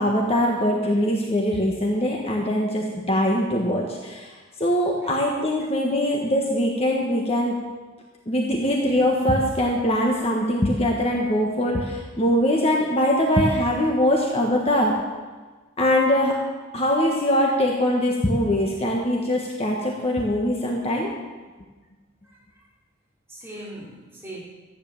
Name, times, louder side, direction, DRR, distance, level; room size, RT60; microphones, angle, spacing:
voice 1, 0.0-4.3 4.6-7.5 8.3-14.9 15.8-16.4 16.7-21.1, equal, 30° left, -1 dB, 1.5 m, -22 dB
voice 2, 22.2-22.7 23.3-24.4, right 1 dB, 10° right, -6 dB, 3.9 m, -41 dB
14.0 x 9.8 x 7.2 m, 1.3 s
head